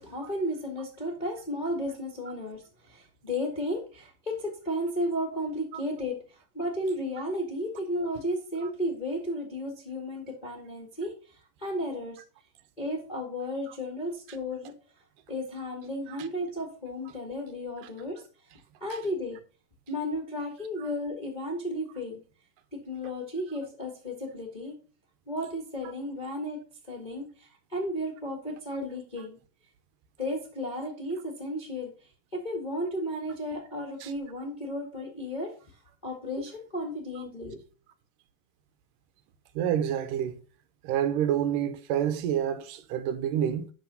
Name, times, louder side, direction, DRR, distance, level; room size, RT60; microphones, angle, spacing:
voice 1, 0.0-11.1 11.6-12.2 12.8-14.7 15.3-18.2 18.8-19.4 19.9-22.2 22.7-24.7 25.3-26.6 26.9-29.4 30.2-31.9 32.3-35.5 36.0-37.6, equal, 25° left, 0.9 m, -33 dB
voice 2, 39.6-40.4 40.8-43.7, right 10 dB, 80° right, 2.2 m, -28 dB
11.5 x 3.8 x 5.3 m
omnidirectional pair, 3.9 m